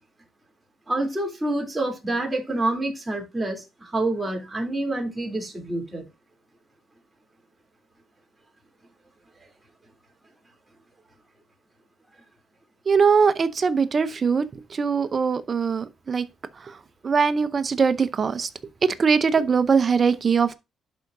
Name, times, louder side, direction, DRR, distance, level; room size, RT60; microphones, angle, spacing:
voice 1, 0.9-6.0, right 2 dB, 15° right, 3.3 m, -27 dB
voice 2, 12.9-14.5 14.7-16.2 16.7-16.8 17.0-18.5 18.8-20.5, right 5 dB, 40° right, 0.7 m, -21 dB
11.5 x 4.8 x 2.7 m
cardioid pair, 90°, 0 cm